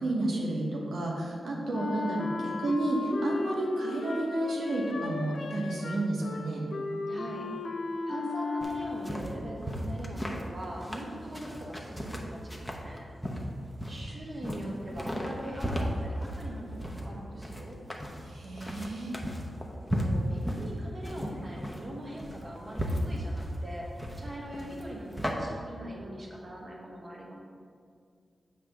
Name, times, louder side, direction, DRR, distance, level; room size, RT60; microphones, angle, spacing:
voice 1, 0.0-6.7 18.2-19.1, right 1 dB, 90° right, -2 dB, 1.0 m, -31 dB
voice 2, 1.5-2.0 7.1-7.5 8.0-13.1 13.9-17.8 19.6-27.3, right 1 dB, 35° right, -2 dB, 1.2 m, -42 dB
Wind instrument woodwind instrument, 1.7-9.3, left 3 dB, 60° left, 0.5 m, -36 dB
sound 1, 8.6-25.3, equal, ahead, 0.8 m, -35 dB
7.4 x 3.3 x 5.8 m, 2.2 s
wide cardioid pair, 95°, 0 cm